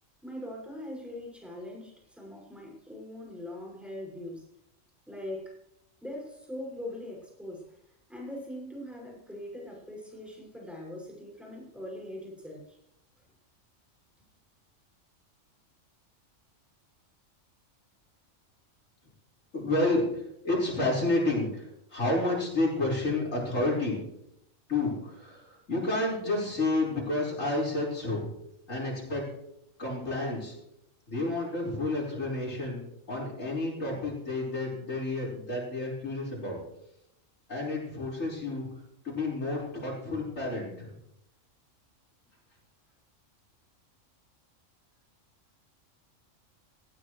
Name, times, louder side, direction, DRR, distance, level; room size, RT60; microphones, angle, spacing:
voice 1, 0.2-4.5 5.1-5.6 6.0-12.8, left 1 dB, ahead, -2 dB, 6.3 m, -41 dB
voice 2, 19.5-24.1 24.7-28.3 28.7-29.3 29.8-30.6 31.1-32.8 33.1-36.6 37.5-38.7 39.0-40.9, left 2 dB, 75° left, -4 dB, 5.5 m, -30 dB
18.0 x 18.0 x 3.3 m, 0.80 s
omnidirectional pair, 1.3 m